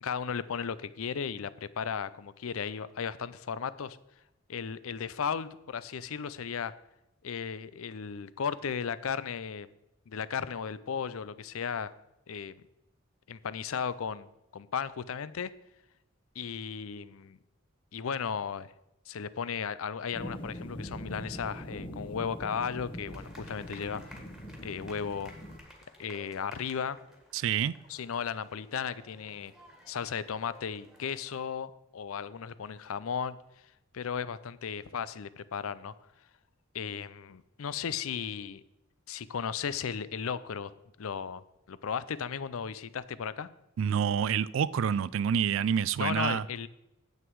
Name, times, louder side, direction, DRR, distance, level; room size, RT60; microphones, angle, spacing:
voice 1, 0.0-4.0 4.5-6.7 7.2-9.7 10.1-11.9 12.3-12.6 13.3-14.3 14.5-15.5 16.4-17.4 17.9-18.7 19.1-24.2 24.6-25.3 26.0-27.0 27.9-29.5 29.9-33.4 33.9-35.9 36.7-38.6 39.1-40.7 41.0-43.5 46.0-46.7, left 6 dB, 75° left, 16 dB, 0.5 m, -35 dB
sound 1, 20.1-25.6, equal, 25° left, 0.9 m, -42 dB
sound 2, 23.1-31.4, equal, ahead, 1.7 m, -55 dB
voice 2, 27.3-27.7 43.8-46.4, right 7 dB, 65° right, 19 dB, 0.3 m, -27 dB
9.5 x 7.9 x 4.7 m, 0.90 s
head